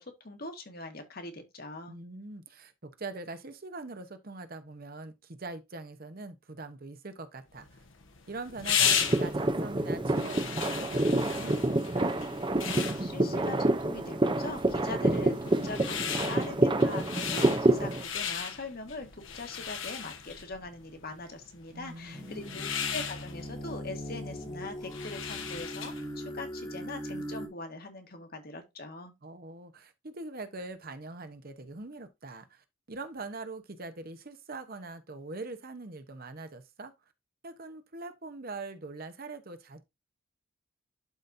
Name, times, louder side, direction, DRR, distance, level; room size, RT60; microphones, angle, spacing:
voice 1, 0.0-2.0 13.0-29.1, left 2 dB, 45° left, 1.5 m, -42 dB
voice 2, 1.9-7.8 8.3-12.1 21.7-22.7 29.2-36.9 37.4-39.8, right 3 dB, 45° right, 0.9 m, -43 dB
sound 1, 7.6-26.1, left 8 dB, 60° left, 1.1 m, -36 dB
sound 2, 8.8-18.0, right 2 dB, 20° right, 0.6 m, -28 dB
sound 3, 22.1-27.5, equal, 15° left, 1.3 m, -40 dB
12.0 x 4.0 x 2.7 m
head